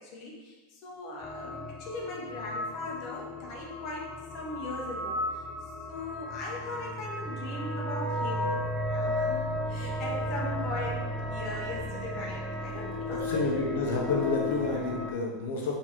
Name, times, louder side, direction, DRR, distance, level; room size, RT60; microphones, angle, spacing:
voice 1, 0.0-5.4 5.9-13.6, left 2 dB, 30° left, -3 dB, 0.8 m, -39 dB
sound 1, 1.2-15.1, left 1 dB, 15° left, 0.4 m, -34 dB
voice 2, 13.1-15.8, left 3 dB, 60° left, -1 dB, 0.7 m, -30 dB
4.3 x 2.7 x 4.3 m, 1.2 s
supercardioid pair, 175°, 0 cm